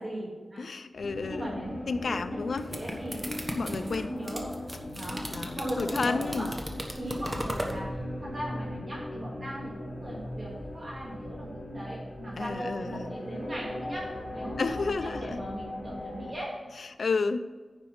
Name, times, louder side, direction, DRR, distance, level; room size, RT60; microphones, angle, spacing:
voice 1, 0.0-0.6 1.3-3.3 3.5-4.5 4.9-6.5 6.9-16.6, right 1 dB, 35° right, -6 dB, 2.7 m, -38 dB
voice 2, 0.6-1.6 1.9-2.7 3.5-4.1 5.3-6.5 7.3-7.4 12.4-13.1 14.6-15.4 16.8-17.5, left 4 dB, 80° left, 10 dB, 0.5 m, -31 dB
sound 1, 0.9-16.3, left 1 dB, 60° left, 2.9 m, -39 dB
sound 2, 2.4-7.8, equal, 15° right, 1.2 m, -36 dB
9.8 x 5.2 x 6.0 m, 1.4 s
wide cardioid pair, 115°, 0 cm